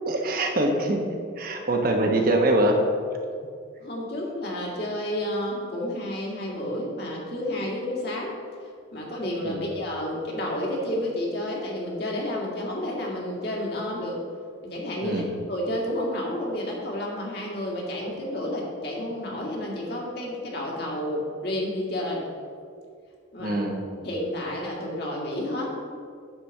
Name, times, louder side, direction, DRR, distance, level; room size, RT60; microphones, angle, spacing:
voice 1, 0.0-2.8 9.4-9.7 15.0-15.3 23.4-23.8, right 1 dB, 45° right, 2 dB, 1.0 m, -24 dB
voice 2, 3.8-14.2 14.6-22.3 23.3-23.6 24.0-25.8, left 1 dB, 50° left, -3 dB, 2.0 m, -30 dB
9.7 x 4.2 x 7.1 m, 2.2 s
head